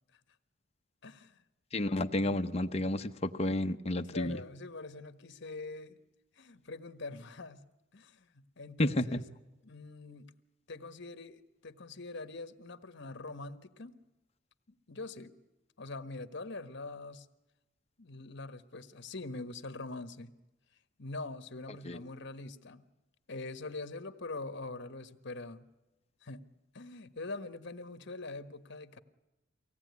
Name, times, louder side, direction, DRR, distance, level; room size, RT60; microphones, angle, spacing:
voice 1, 1.0-1.4 1.9-2.8 3.4-3.5 4.1-6.0 6.3-7.6 7.9-9.3 9.6-10.3 10.7-14.0 14.7-15.3 15.8-17.3 18.0-20.3 21.0-22.8 23.3-25.7 26.2-29.0, left 3 dB, 60° left, 10 dB, 1.4 m, -44 dB
voice 2, 1.7-4.4 8.8-9.2 21.8-22.0, left 1 dB, 35° left, 6 dB, 0.9 m, -31 dB
24.0 x 17.5 x 9.6 m, 1.1 s
head